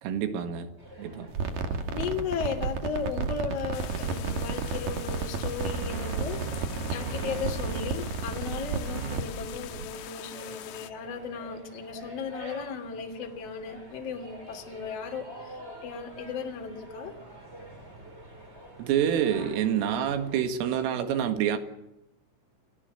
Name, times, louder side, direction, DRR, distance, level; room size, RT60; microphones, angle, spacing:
voice 1, 0.0-0.7 1.0-1.3 18.8-21.6, right 9 dB, 75° right, 4.5 m, -27 dB
sound 1, 0.8-20.4, equal, 15° right, 5.0 m, -48 dB
sound 2, 1.3-9.9, right 4 dB, 50° right, 3.0 m, -32 dB
voice 2, 1.9-6.5 6.9-17.1, left 6 dB, 35° left, 3.4 m, -36 dB
sound 3, 3.7-10.9, left 13 dB, 75° left, 2.8 m, -44 dB
30.0 x 18.5 x 8.0 m
omnidirectional pair, 6.0 m